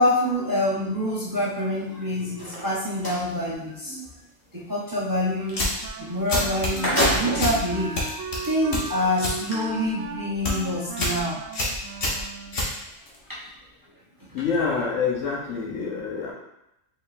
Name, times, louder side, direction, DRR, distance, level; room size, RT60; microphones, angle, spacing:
voice 1, 0.0-4.1 4.5-5.7 6.0-8.0 8.4-11.4 13.3-13.4, left 1 dB, 20° right, -7 dB, 0.7 m, -26 dB
sound 1, 2.3-3.2 6.1-6.2 6.5-7.6 8.3-8.4 9.3-9.5, equal, 20° left, 1.1 m, -26 dB
Wind instrument woodwind instrument, 5.4-12.8, right 5 dB, 75° right, 1.0 m, -37 dB
sound 2, 5.5-5.9 6.3-7.6 8.0-9.4 9.7-10.0 10.3-10.6 11.0-11.2 11.5-13.2, left 2 dB, 50° left, 1.1 m, -27 dB
voice 2, 14.3-16.3, left 5 dB, 70° left, -3 dB, 1.2 m, -27 dB
4.7 x 3.7 x 2.5 m, 0.85 s
omnidirectional pair, 1.3 m